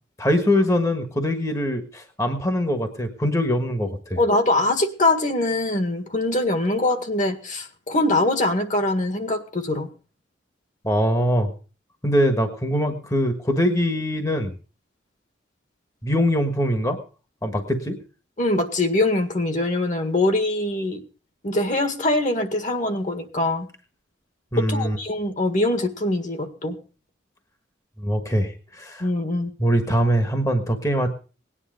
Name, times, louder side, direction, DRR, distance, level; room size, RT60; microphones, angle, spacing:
voice 1, 0.2-4.2 10.8-11.5 12.0-14.6 16.0-17.0 17.4-18.0 24.5-25.0 28.0-29.1 29.6-31.1, equal, 15° left, 6 dB, 1.4 m, -22 dB
voice 2, 4.2-9.9 18.4-21.0 21.4-23.7 24.6-26.8 29.0-29.5, left 2 dB, 40° left, 7 dB, 1.8 m, -23 dB
18.5 x 10.0 x 5.1 m, 0.37 s
head